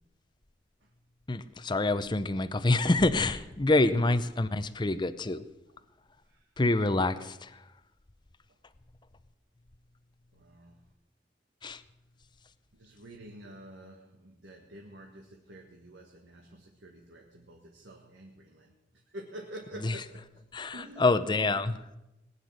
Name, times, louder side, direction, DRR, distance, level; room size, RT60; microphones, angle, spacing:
voice 1, 1.3-5.4 6.6-7.6 11.6-11.8 19.8-19.9 20.5-21.8, left 2 dB, 25° left, 12 dB, 0.6 m, -27 dB
voice 2, 6.2-6.5 8.5-8.6 10.3-10.8 12.7-20.5 20.7-21.2, right 1 dB, 85° right, 1 dB, 1.6 m, -49 dB
19.5 x 9.9 x 6.4 m, 0.95 s
head